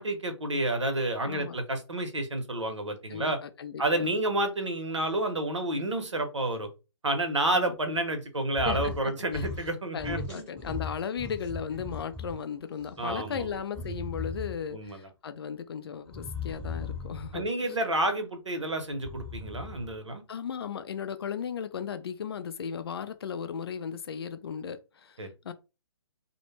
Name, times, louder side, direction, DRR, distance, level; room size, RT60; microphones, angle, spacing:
voice 1, 0.0-3.4 3.8-6.7 7.0-10.4 13.0-13.5 14.7-15.1 17.3-20.2 25.2-25.3, right 1 dB, 85° right, 0.8 m, -30 dB
voice 2, 1.2-1.6 3.1-4.1 7.5-7.7 8.6-9.5 9.9-17.5 20.3-25.2 25.4-25.5, left 7 dB, 55° left, 0.4 m, -36 dB
sound 1, 8.5-9.0 9.3-9.7 10.0-12.4 12.8-14.7 16.1-17.5 18.9-20.0, left 3 dB, 5° left, 0.8 m, -38 dB
2.1 x 2.1 x 3.1 m
figure-of-eight pair, 135°, 15 cm